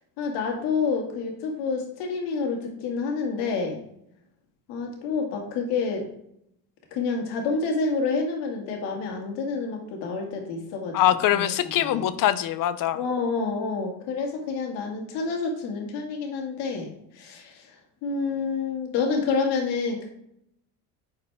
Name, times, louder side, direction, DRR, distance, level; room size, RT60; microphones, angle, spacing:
voice 1, 0.2-3.8 4.7-6.1 6.9-11.0 11.3-11.5 11.8-12.1 12.9-20.1, left 4 dB, 80° left, 1 dB, 2.1 m, -28 dB
voice 2, 10.9-13.0, left 12 dB, 55° left, 14 dB, 0.6 m, -23 dB
9.5 x 4.8 x 3.4 m, 0.76 s
supercardioid pair, 95°, 40 cm